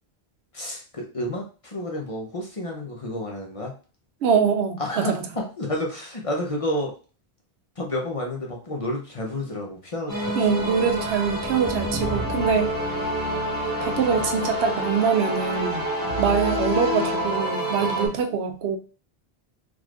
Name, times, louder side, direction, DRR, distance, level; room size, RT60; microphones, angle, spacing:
voice 1, 0.5-3.7 4.8-6.9 7.8-10.9 12.4-12.5 14.4-14.5 17.8-18.1, left 1 dB, 35° left, 0 dB, 0.7 m, -31 dB
voice 2, 4.2-5.3 10.4-12.7 13.8-15.8 16.2-18.8, right 6 dB, 90° right, 6 dB, 0.8 m, -24 dB
sound 1, 10.1-18.1, equal, 20° right, 1.1 m, -27 dB
3.8 x 3.1 x 2.4 m, 0.37 s
omnidirectional pair, 1.1 m